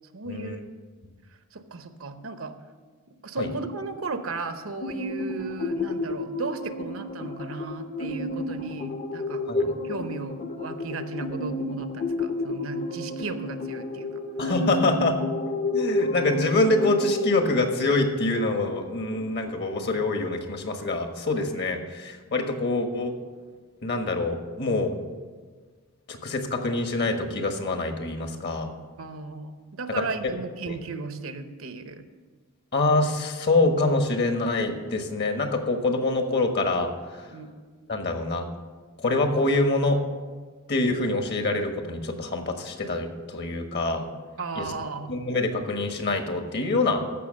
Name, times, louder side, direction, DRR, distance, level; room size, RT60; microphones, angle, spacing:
voice 1, 0.1-0.7 1.5-2.6 3.1-14.2 29.0-32.0 37.3-37.5 44.4-45.2, right 3 dB, 70° right, 9 dB, 0.9 m, -35 dB
sound 1, 4.8-19.2, left 2 dB, 35° left, 0.8 m, -31 dB
voice 2, 14.4-15.2 15.7-23.1 23.8-24.9 26.1-28.7 30.7-30.8 32.7-37.2 37.9-38.5 39.0-40.0 40.7-44.1 44.6-44.7 45.1-47.0, left 2 dB, 50° left, 5 dB, 1.4 m, -25 dB
14.5 x 5.9 x 6.5 m, 1.4 s
head